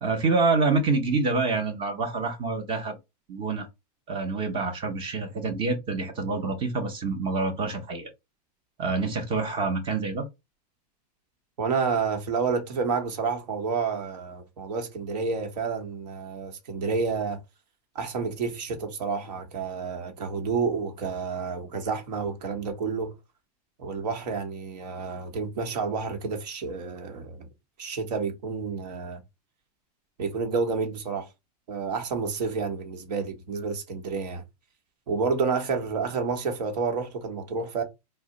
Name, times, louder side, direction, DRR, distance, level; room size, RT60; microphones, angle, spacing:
voice 1, 0.0-3.0 3.3-3.7 4.1-8.1 8.8-10.3, right 3 dB, 25° right, 0.7 m, -27 dB
voice 2, 11.6-17.4 17.9-23.1 23.8-27.5 27.8-29.2 30.2-31.3 31.7-34.4 35.1-37.8, right 5 dB, 75° right, 1.0 m, -29 dB
2.6 x 2.1 x 3.7 m
supercardioid pair, 140°, 21 cm